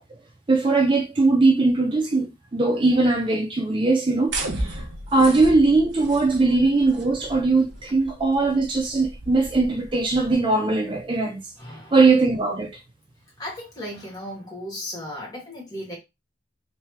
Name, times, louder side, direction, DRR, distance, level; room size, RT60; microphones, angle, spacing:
voice 1, 0.5-4.8 5.1-11.4 11.9-12.8, right 3 dB, 30° right, 0.4 m, -20 dB
Laser one, 4.3-10.3, right 2 dB, 85° right, 1.0 m, -35 dB
voice 2, 11.6-12.0 13.4-16.0, left 1 dB, 20° left, 1.8 m, -35 dB
3.3 x 3.3 x 2.8 m
head